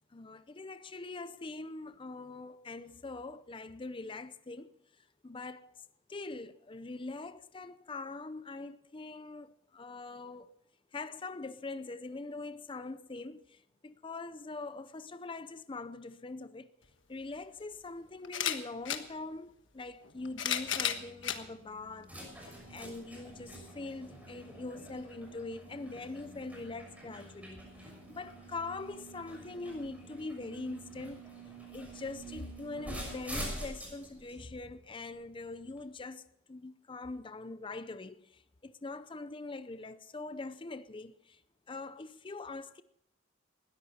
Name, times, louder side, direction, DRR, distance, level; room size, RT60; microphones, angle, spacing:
voice 1, 0.1-5.8 6.1-10.5 10.9-16.7 17.1-31.2 31.7-41.4 41.7-42.8, left 3 dB, 25° left, 0.6 m, -43 dB
sound 1, 16.8-16.9 18.2-19.0 20.0-21.4 22.2-22.3 23.5-23.6, left 9 dB, 70° left, 1.4 m, -33 dB
sound 2, 20.1-35.8, right 1 dB, 10° right, 6.5 m, -47 dB
19.5 x 14.0 x 4.3 m
head